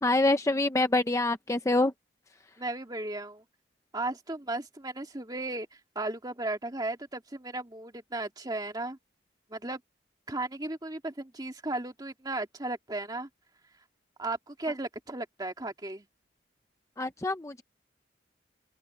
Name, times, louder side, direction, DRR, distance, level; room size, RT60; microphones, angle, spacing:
voice 1, 0.0-1.9 17.0-17.6, left 2 dB, 15° left, 0.7 m, -26 dB
voice 2, 2.6-3.4 3.9-5.7 6.0-9.0 9.5-9.8 10.3-13.3 14.2-16.1, right 2 dB, 20° right, 2.1 m, -35 dB
open air
head